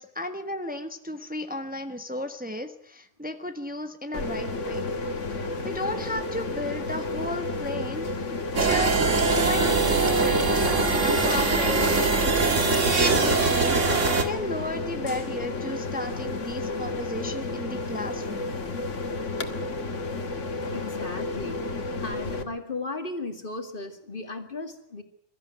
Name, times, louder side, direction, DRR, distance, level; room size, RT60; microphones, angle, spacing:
voice 1, 0.0-4.9 5.6-8.3 8.6-9.0 9.3-10.5 11.0-18.5, left 1 dB, 5° right, 7 dB, 1.4 m, -34 dB
sound 1, 4.1-22.4, left 3 dB, 90° left, 2.1 m, -32 dB
sound 2, 8.6-14.2, right 3 dB, 90° right, 2.7 m, -22 dB
voice 2, 20.7-21.6 22.0-25.0, left 3 dB, 45° left, 6 dB, 2.4 m, -36 dB
23.0 x 14.0 x 9.4 m, 0.68 s
omnidirectional pair, 1.2 m